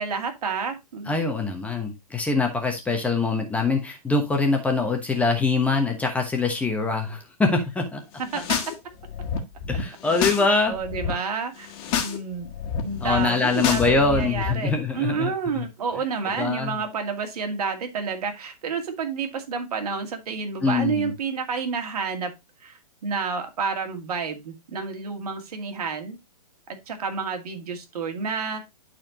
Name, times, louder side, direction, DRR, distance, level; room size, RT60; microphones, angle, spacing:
voice 1, 0.0-1.1 8.3-8.6 10.7-11.7 12.0-12.5 12.8-22.3 22.6-26.2 26.7-28.6, right 5 dB, 65° right, 5 dB, 2.3 m, -29 dB
voice 2, 1.1-8.0 9.7-10.8 13.0-15.3 15.6-15.7 16.2-16.8 20.6-21.1, left 3 dB, 5° left, 3 dB, 1.1 m, -24 dB
sound 1, 8.2-8.7 9.0-10.5 10.7-11.1 11.6-12.2 12.4-14.5, left 7 dB, 35° left, 1.8 m, -29 dB
11.5 x 4.4 x 2.9 m, 0.21 s
hypercardioid pair, 135°, 21 cm